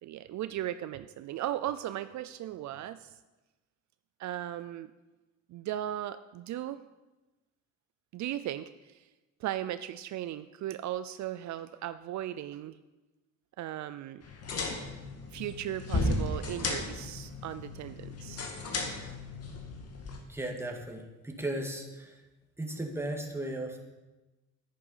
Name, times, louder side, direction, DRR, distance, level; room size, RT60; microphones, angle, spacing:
voice 1, 0.0-3.2 4.2-4.9 5.5-6.8 8.1-9.1 9.4-12.8 13.6-14.2 15.3-18.5, right 12 dB, 70° right, 12 dB, 0.5 m, -37 dB
sound 1, 14.2-20.2, left 2 dB, 55° left, 2.1 m, -35 dB
voice 2, 20.3-22.2 22.6-23.9, right 1 dB, 10° right, 2 dB, 2.0 m, -36 dB
10.0 x 9.4 x 5.6 m, 1.1 s
cardioid pair, 90°, 30 cm